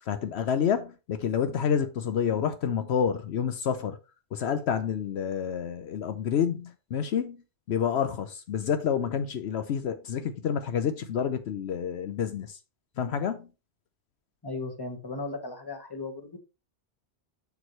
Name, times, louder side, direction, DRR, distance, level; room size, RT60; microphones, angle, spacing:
voice 1, 0.0-4.0 4.3-7.4 7.7-12.6 13.0-13.5, left 7 dB, 75° left, 0.9 m, -28 dB
voice 2, 14.4-16.4, left 3 dB, 20° left, 1.3 m, -36 dB
7.1 x 6.3 x 3.1 m
omnidirectional pair, 1.1 m